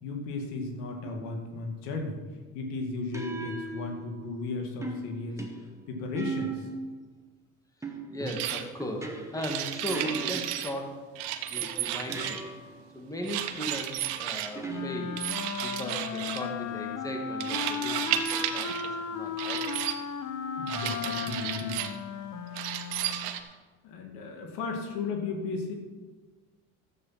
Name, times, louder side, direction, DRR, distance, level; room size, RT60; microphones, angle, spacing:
voice 1, 0.0-2.2 2.5-5.4 5.9-6.7 20.6-21.8 23.8-25.7, left 3 dB, 75° left, 3 dB, 2.2 m, -35 dB
sound 1, 1.0-1.4 3.1-4.4 4.8-7.0 7.8-10.8 11.6-12.8 14.6-15.4, right 3 dB, 5° right, 1.5 m, -39 dB
voice 2, 8.1-11.2 11.5-12.4 12.9-15.2 15.6-19.7, equal, 10° left, 2 dB, 2.0 m, -37 dB
sound 2, 8.3-8.6 9.4-10.7 11.2-12.5 13.2-14.5 15.2-16.5 17.4-18.9 19.4-20.0 20.7-22.0 22.5-23.4, right 11 dB, 75° right, 1.1 m, -33 dB
Wind instrument woodwind instrument, 14.7-23.3, left 6 dB, 50° left, 1.3 m, -35 dB
12.5 x 8.1 x 5.8 m, 1.3 s
supercardioid pair, 90°, 39 cm